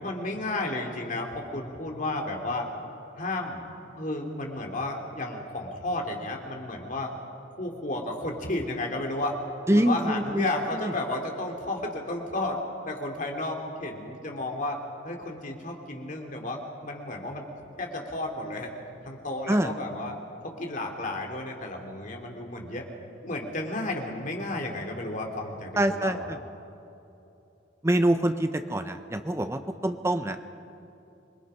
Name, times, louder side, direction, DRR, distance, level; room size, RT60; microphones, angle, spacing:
voice 1, 0.0-2.7 3.2-3.7 4.0-7.1 7.6-9.4 9.7-17.5 17.8-18.7 19.0-20.1 20.4-22.9 23.2-26.4, left 2 dB, 40° left, 1 dB, 2.6 m, -32 dB
voice 2, 9.7-10.5 10.8-10.9 19.5-19.7 25.8-26.4 27.8-30.4, right 1 dB, 15° right, 8 dB, 0.6 m, -25 dB
26.5 x 21.5 x 5.6 m, 2.9 s
head